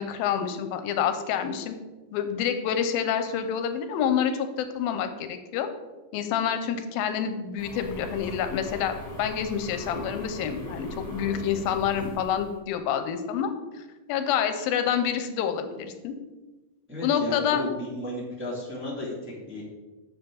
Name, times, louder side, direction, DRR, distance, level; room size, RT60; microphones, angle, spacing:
voice 1, 0.0-1.7 2.1-5.7 6.1-13.5 14.1-16.1 17.0-17.7, left 8 dB, 90° left, 8 dB, 2.5 m, -27 dB
sound 1, 7.6-12.6, left 1 dB, 10° left, 2.2 m, -39 dB
voice 2, 16.9-19.6, left 1 dB, 5° right, -6 dB, 1.9 m, -34 dB
9.8 x 7.1 x 3.9 m, 1.2 s
omnidirectional pair, 4.2 m